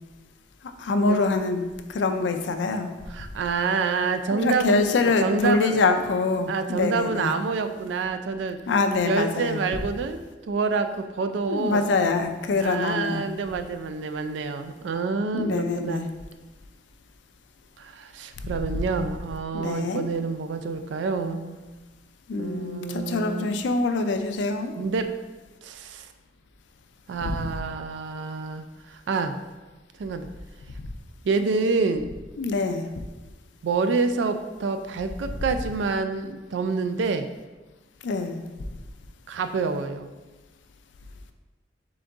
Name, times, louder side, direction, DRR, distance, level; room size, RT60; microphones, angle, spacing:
voice 1, 0.8-2.9 4.3-7.3 8.7-9.6 11.5-13.2 15.3-16.0 19.5-20.1 22.3-24.7 27.2-27.4 32.4-32.8 38.0-38.4, left 3 dB, 75° left, 7 dB, 0.4 m, -25 dB
voice 2, 3.1-5.8 6.5-8.6 9.0-11.9 12.6-16.1 17.8-21.6 22.4-23.6 24.8-25.1 25.6-26.1 27.1-29.4 30.0-30.3 31.2-32.1 33.6-37.3 39.3-40.1, right 4 dB, 75° right, 8 dB, 0.3 m, -27 dB
3.8 x 3.7 x 3.4 m, 1.2 s
head